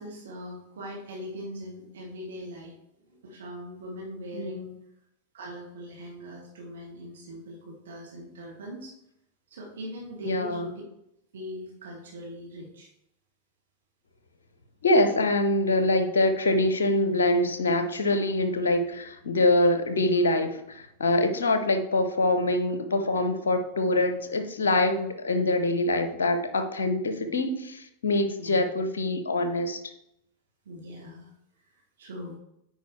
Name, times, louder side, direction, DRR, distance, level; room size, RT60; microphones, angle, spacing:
voice 1, 0.0-4.7 5.3-8.9 9.5-10.7 11.3-12.9 27.2-27.3 28.3-28.6 30.6-31.3 31.7-32.4, equal, 65° right, -1 dB, 1.5 m, -41 dB
voice 2, 10.2-10.7 14.8-29.8, left 2 dB, 70° left, 9 dB, 0.8 m, -24 dB
9.1 x 4.8 x 3.2 m, 0.80 s
figure-of-eight pair, 90°, 0 cm